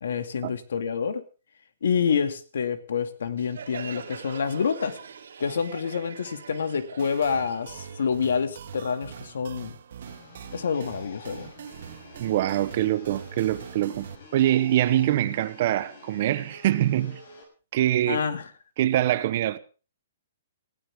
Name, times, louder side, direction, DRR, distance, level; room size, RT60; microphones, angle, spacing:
voice 1, 0.0-1.2 1.8-5.0 5.4-9.8 10.5-11.5 18.0-18.4, left 6 dB, 70° left, 2.2 m, -27 dB
Crowd, 3.4-8.8, right 6 dB, 75° right, 3.1 m, -43 dB
sound 1, 7.0-14.1, right 8 dB, 50° right, 1.8 m, -43 dB
sound 2, 10.1-17.4, left 2 dB, 45° left, 6.3 m, -49 dB
voice 2, 12.2-17.2 17.7-18.2 18.8-19.6, right 12 dB, 35° right, 0.9 m, -24 dB
19.5 x 16.0 x 3.6 m
hypercardioid pair, 175°, 0 cm